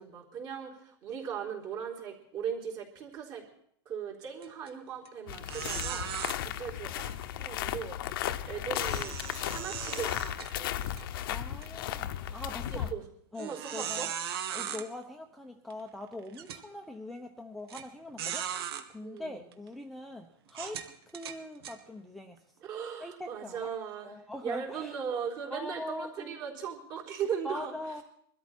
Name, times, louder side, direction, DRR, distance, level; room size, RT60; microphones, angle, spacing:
voice 1, 0.0-3.4 3.9-11.0 12.7-13.0 13.4-14.1 19.0-19.5 22.6-27.7, right 7 dB, 35° right, -1 dB, 4.0 m, -39 dB
sound 1, 4.4-4.7 5.0-5.1 5.5-6.3 8.7-11.0 11.5-11.7 12.3-12.4 13.4-14.8 15.7-15.8 16.3-16.6 17.7-17.8 18.2-18.8 19.5-19.7 20.5-21.8, right 9 dB, 70° right, 1.9 m, -38 dB
sound 2, 5.3-12.9, left 12 dB, 65° left, 1.0 m, -35 dB
voice 2, 11.3-12.9 13.3-14.1 14.5-22.4 23.0-23.7 24.0-25.0 25.5-26.4 27.4-28.0, left 1 dB, ahead, 2 dB, 0.9 m, -42 dB
23.0 x 13.0 x 4.5 m, 0.68 s
supercardioid pair, 155°, 13 cm